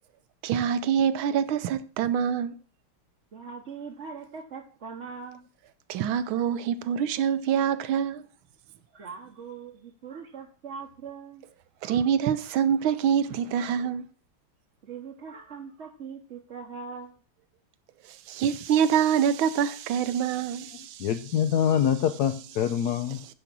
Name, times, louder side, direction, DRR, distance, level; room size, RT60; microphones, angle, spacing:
voice 1, 0.4-2.5 5.9-8.2 11.8-14.0 18.3-21.1, right 8 dB, 80° right, 1.5 m, -25 dB
voice 2, 3.3-5.4 6.4-6.5 8.9-11.4 11.8-12.1 13.6-13.7 14.8-17.1, right 5 dB, 45° right, 1.0 m, -41 dB
voice 3, 20.8-23.2, left 9 dB, 75° left, 0.9 m, -25 dB
9.8 x 5.3 x 6.0 m
omnidirectional pair, 2.3 m